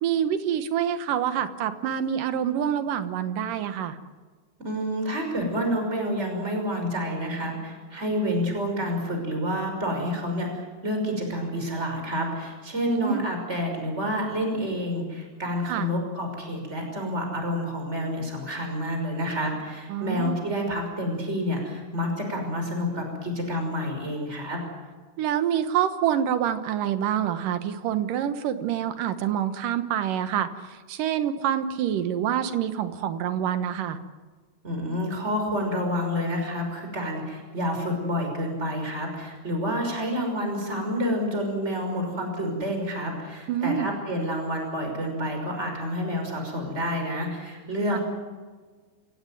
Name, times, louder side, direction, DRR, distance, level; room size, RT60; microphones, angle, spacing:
voice 1, 0.0-4.0 12.9-13.3 15.7-15.9 19.9-20.4 25.2-34.0 43.5-43.9 47.9-48.0, right 9 dB, 85° right, 10 dB, 3.0 m, -26 dB
voice 2, 4.6-24.6 34.6-48.0, equal, 20° right, 3 dB, 6.0 m, -29 dB
27.5 x 17.0 x 9.3 m, 1.4 s
omnidirectional pair, 3.7 m